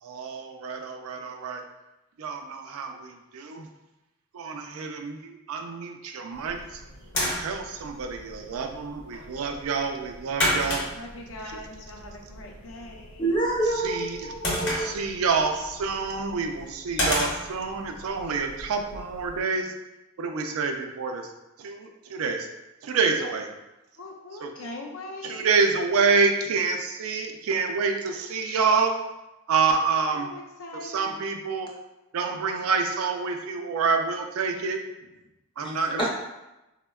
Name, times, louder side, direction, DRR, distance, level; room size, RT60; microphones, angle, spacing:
voice 1, 0.0-1.6 2.2-3.7 4.3-6.8 7.3-10.8 11.5-11.6 13.8-14.3 14.8-19.7 20.2-21.3 21.6-22.5 22.8-23.5 24.4-24.5 25.2-28.9 29.5-30.3 30.7-31.7 32.1-34.8 35.6-36.1, right 5 dB, 80° right, 4 dB, 0.4 m, -27 dB
sound 1, 6.3-19.4, left 1 dB, 55° left, 0.9 m, -33 dB
voice 2, 10.9-13.2 24.0-25.4 30.1-31.1 35.9-36.1, left 2 dB, 70° left, 1 dB, 0.5 m, -41 dB
voice 3, 13.2-14.9 35.6-35.7 36.0-36.1, right 2 dB, 20° left, -3 dB, 0.5 m, -27 dB
4.2 x 2.1 x 2.2 m, 0.98 s
head